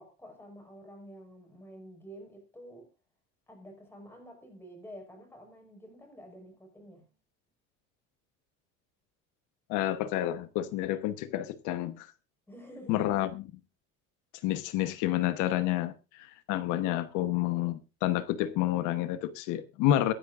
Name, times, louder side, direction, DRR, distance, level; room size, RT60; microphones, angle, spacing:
voice 1, 0.0-2.9 3.5-7.1 12.5-13.1, equal, 5° left, 6.0 m, -49 dB
voice 2, 9.7-12.1 12.9-13.3 14.4-20.1, left 13 dB, 80° left, 1.1 m, -29 dB
23.0 x 10.5 x 2.5 m
cardioid pair, 145°, 30 cm